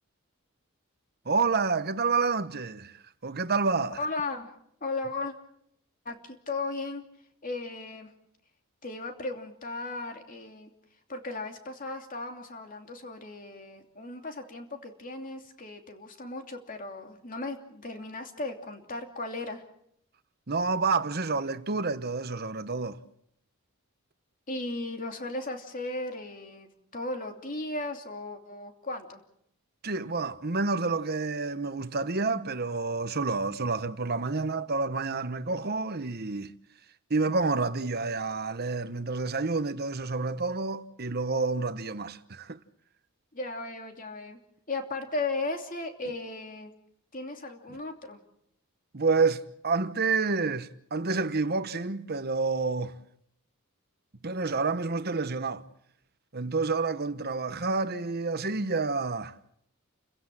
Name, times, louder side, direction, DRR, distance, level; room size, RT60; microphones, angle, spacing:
voice 1, 1.2-4.0 20.5-23.0 29.8-36.5 37.1-42.6 48.9-53.0 54.2-55.6 56.3-59.4, right 4 dB, 45° right, 1.1 m, -29 dB
voice 2, 4.0-4.5 4.8-5.3 6.0-7.0 7.4-8.1 8.8-10.7 11.1-19.6 24.5-29.2 43.3-44.4 44.7-46.7 47.1-48.2, left 2 dB, 40° left, 2.9 m, -36 dB
30.0 x 16.0 x 7.5 m
head